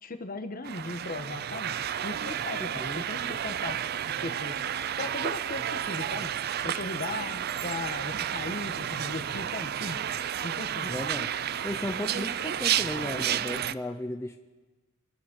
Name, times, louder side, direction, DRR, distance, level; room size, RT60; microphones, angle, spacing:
voice 1, 0.0-1.8 2.0-3.8 4.1-4.6 5.0-6.3 6.6-10.0 10.4-10.9, left 2 dB, 45° left, 7 dB, 1.2 m, -37 dB
sound 1, 0.6-13.7, right 9 dB, 50° right, 0.4 m, -31 dB
voice 2, 2.6-3.1 10.8-11.3 11.6-14.4, left 1 dB, 15° left, 5 dB, 0.5 m, -35 dB
25.0 x 9.8 x 5.2 m, 1.3 s
head